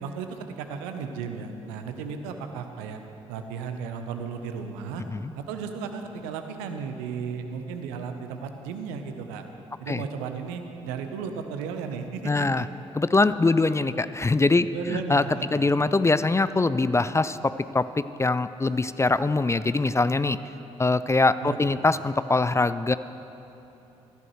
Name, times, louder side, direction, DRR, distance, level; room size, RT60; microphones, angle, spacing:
voice 1, 0.0-3.0 3.3-5.0 5.3-9.4 9.8-12.7 14.7-15.9 21.4-21.7, right 6 dB, 75° right, 6 dB, 1.0 m, -35 dB
voice 2, 12.2-12.7 12.9-15.2 15.5-20.4 20.8-23.0, left 3 dB, 15° left, 14 dB, 0.5 m, -23 dB
20.5 x 15.0 x 3.2 m, 3.0 s
figure-of-eight pair, 40°, 16 cm